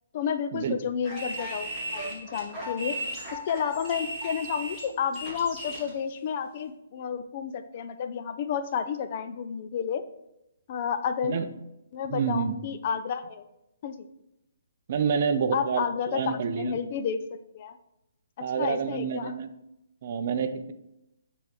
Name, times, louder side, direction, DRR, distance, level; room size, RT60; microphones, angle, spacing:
voice 1, 0.1-3.0 3.3-10.0 10.7-11.4 11.9-13.4 13.8-14.1 15.5-17.2 17.5-17.8 18.4-19.3, left 7 dB, 40° left, 10 dB, 0.4 m, -31 dB
sound 1, 1.0-5.9, right 1 dB, ahead, 2.2 m, -36 dB
voice 2, 12.1-12.6 14.9-16.7 18.4-19.5 20.0-20.7, right 6 dB, 45° right, 10 dB, 0.5 m, -28 dB
9.2 x 3.4 x 3.0 m, 0.87 s
hypercardioid pair, 155°, 0 cm